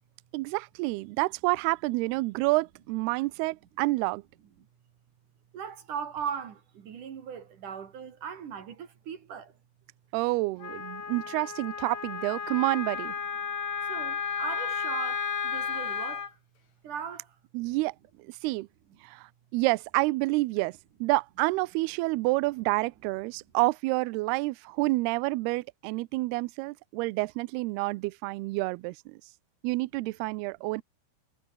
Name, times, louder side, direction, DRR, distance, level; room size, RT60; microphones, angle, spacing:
voice 1, 0.3-4.2 10.1-13.1 17.5-17.9 18.3-18.7 19.0-29.2 29.6-30.8, right 23 dB, 80° right, 2.4 m, -28 dB
voice 2, 5.5-9.5 13.9-16.3 16.8-17.4, right 7 dB, 55° right, 3.2 m, -38 dB
Wind instrument woodwind instrument, 10.6-16.3, left 6 dB, 45° left, 4.1 m, -33 dB
omnidirectional pair, 5.0 m